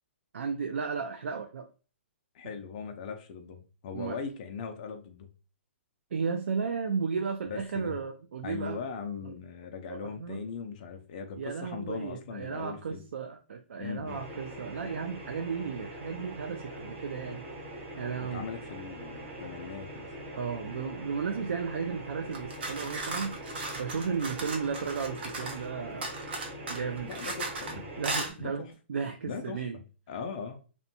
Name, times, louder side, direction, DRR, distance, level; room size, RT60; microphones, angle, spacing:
voice 1, 0.3-1.7 3.9-4.2 6.1-8.8 9.9-10.4 11.4-17.4 18.0-18.5 20.4-26.1 26.7-27.1 28.0-29.8, right 5 dB, 85° right, 0.4 m, -34 dB
voice 2, 2.3-5.3 7.5-8.0 8.4-13.0 13.8-14.2 18.2-20.1 27.0-27.9 28.4-28.7 29.2-29.6 30.1-30.6, left 5 dB, 35° left, 0.4 m, -39 dB
sound 1, 14.1-28.3, right 1 dB, 25° right, 0.7 m, -43 dB
sound 2, 22.3-25.7 26.0-27.7 28.0-28.3, right 2 dB, 55° right, 0.7 m, -36 dB
2.6 x 2.1 x 2.7 m
hypercardioid pair, 165°, 7 cm